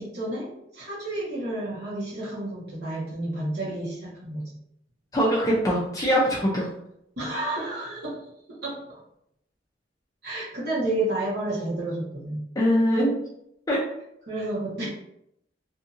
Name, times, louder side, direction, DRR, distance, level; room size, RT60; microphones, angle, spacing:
voice 1, 0.0-4.5 7.2-9.0 10.2-12.4 14.3-14.9, right 1 dB, 60° right, -7 dB, 1.1 m, -31 dB
voice 2, 5.1-6.7 12.6-13.2 13.7-13.8, equal, 20° left, -5 dB, 0.4 m, -22 dB
2.7 x 2.6 x 2.5 m, 0.76 s
head